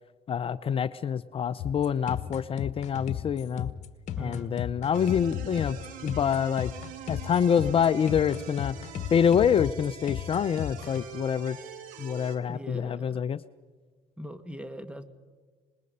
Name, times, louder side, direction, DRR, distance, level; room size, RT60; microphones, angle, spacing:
voice 1, 0.3-3.7 4.2-5.8 6.0-6.7 7.1-8.8 9.1-11.6 12.0-13.4, left 8 dB, 40° left, 13 dB, 0.6 m, -26 dB
sound 1, 1.6-11.0, left 10 dB, 55° left, 1.4 m, -35 dB
voice 2, 4.2-4.5 12.5-13.2 14.2-15.0, left 1 dB, 10° right, 10 dB, 1.8 m, -40 dB
sound 2, 4.9-12.4, right 8 dB, 75° right, 2.5 m, -44 dB
25.5 x 21.0 x 5.5 m, 1.5 s
supercardioid pair, 85°, 14 cm